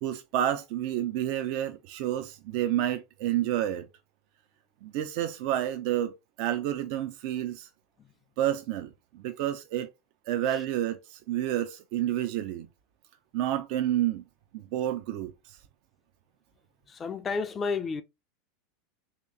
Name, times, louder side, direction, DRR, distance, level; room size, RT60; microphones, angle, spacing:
voice 1, 0.0-3.9 4.8-7.7 8.4-9.9 10.3-12.7 13.3-14.2 14.5-15.3, right 12 dB, 60° right, 0.4 m, -29 dB
voice 2, 16.9-18.0, left 4 dB, 30° left, 0.4 m, -31 dB
3.0 x 2.8 x 3.5 m
hypercardioid pair, 90°, 0 cm